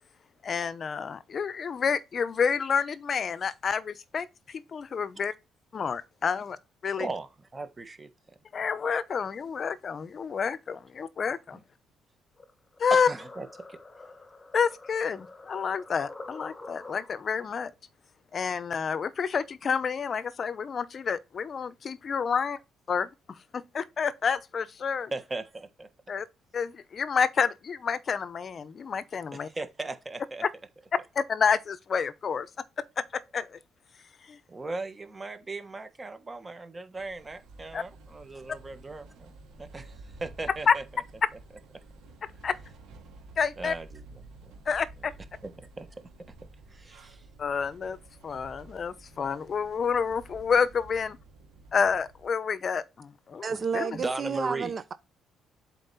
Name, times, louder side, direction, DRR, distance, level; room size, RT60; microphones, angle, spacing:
voice 1, 0.4-5.3 5.7-6.6 6.8-7.1 8.5-11.6 12.8-13.1 14.5-17.7 18.3-22.6 22.9-23.1 23.5-25.1 26.1-26.3 26.5-29.5 31.2-32.5 33.0-33.6 34.3-34.4 37.7-37.8 40.7-40.8 42.4-42.6 43.4-43.7 44.7-45.1 47.4-48.0 48.2-51.2 51.7-53.5 53.7-54.0, left 6 dB, 45° left, 0.7 m, -29 dB
voice 2, 7.0-8.1 11.5-11.6 12.9-13.8 25.1-25.9 29.3-30.4 34.5-39.3 39.6-41.0 43.6-44.2 44.5-44.6 45.4-45.9 46.7-47.2 53.9-54.8, right 3 dB, 20° right, 1.3 m, -37 dB
sound 1, 12.4-17.4, left 2 dB, 20° left, 1.3 m, -47 dB
sound 2, 37.0-52.3, right 2 dB, 85° right, 2.3 m, -51 dB
voice 3, 53.4-54.9, right 6 dB, 40° right, 0.7 m, -31 dB
7.7 x 4.5 x 4.1 m
cardioid pair, 100°, 0 cm